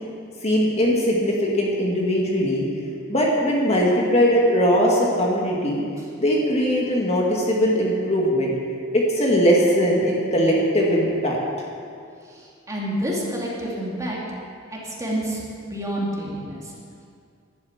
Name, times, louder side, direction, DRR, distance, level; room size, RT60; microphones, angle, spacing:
voice 1, 0.4-2.6 3.1-5.8 6.2-8.5 8.9-11.4, equal, 30° left, -3 dB, 2.0 m, -20 dB
voice 2, 12.7-14.2 14.7-15.4 15.7-16.6, equal, 15° right, -4 dB, 2.6 m, -28 dB
11.5 x 9.7 x 8.7 m, 2.4 s
head